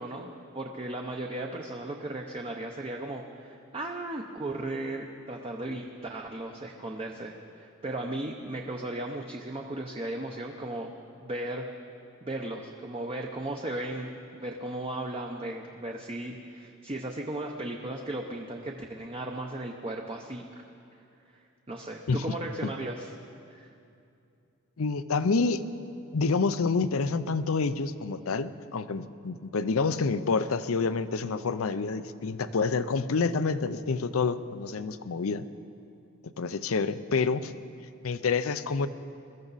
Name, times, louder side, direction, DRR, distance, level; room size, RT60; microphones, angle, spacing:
voice 1, 0.0-10.9 11.2-11.7 12.2-20.6 21.7-23.1 23.5-23.7, right 1 dB, 25° right, 1 dB, 0.7 m, -36 dB
voice 2, 24.8-25.6 26.1-35.4 36.4-37.5 38.0-38.9, left 4 dB, 75° left, 13 dB, 0.6 m, -28 dB
21.5 x 13.5 x 4.1 m, 2.6 s
head